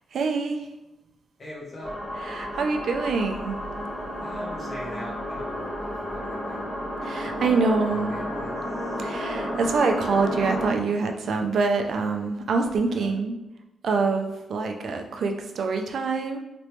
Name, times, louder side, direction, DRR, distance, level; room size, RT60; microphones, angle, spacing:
voice 1, 0.1-0.7 2.3-3.6 7.1-8.2 9.0-13.4 13.8-16.4, right 4 dB, 60° right, 4 dB, 0.4 m, -25 dB
voice 2, 1.4-1.9 4.2-6.7 7.2-9.0 12.8-13.2, left 1 dB, 35° left, -5 dB, 1.0 m, -40 dB
sound 1, 1.8-10.7, equal, 10° left, 1.0 m, -32 dB
3.1 x 3.0 x 3.0 m, 0.98 s
wide cardioid pair, 160°, 0 cm